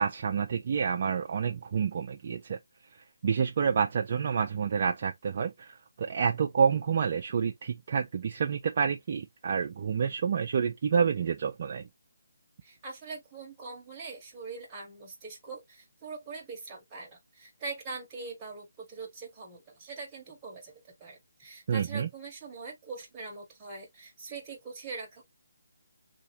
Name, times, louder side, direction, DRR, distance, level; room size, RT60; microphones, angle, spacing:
voice 1, 0.0-2.6 3.2-11.8 21.7-22.1, right 6 dB, 40° right, 0.4 m, -28 dB
voice 2, 12.6-20.7 21.0-25.2, right 4 dB, 15° right, 1.3 m, -42 dB
3.5 x 2.8 x 2.7 m
hypercardioid pair, 160°, 0 cm